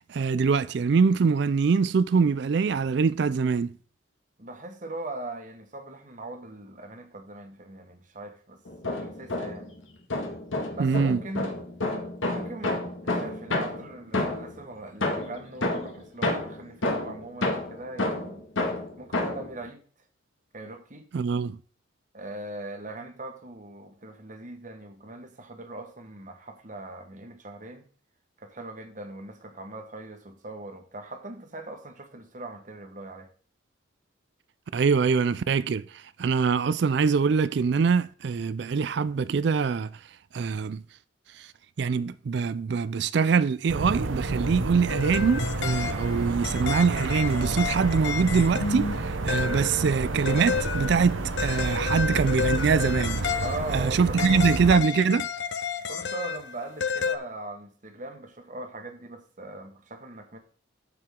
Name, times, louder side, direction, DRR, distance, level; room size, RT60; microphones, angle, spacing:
voice 1, 0.1-3.7 10.8-11.2 21.1-21.6 34.7-39.9 40.3-40.8 41.4-41.5 41.8-53.4 53.7-55.3, right 5 dB, 55° right, 0.3 m, -24 dB
voice 2, 4.4-8.6 8.9-9.8 10.7-11.6 12.3-18.4 19.0-19.8 20.5-21.1 22.1-27.8 28.4-33.3 53.4-54.5 55.9-60.4, right 2 dB, 40° right, 1.2 m, -40 dB
sound 1, 8.7-9.7 10.1-14.6 15.0-19.5, left 2 dB, 80° left, 1.9 m, -30 dB
sound 2, 43.7-54.8, right 2 dB, 80° right, 0.8 m, -30 dB
sound 3, 44.9-57.2, left 6 dB, 60° left, 0.6 m, -31 dB
13.0 x 4.9 x 3.7 m
head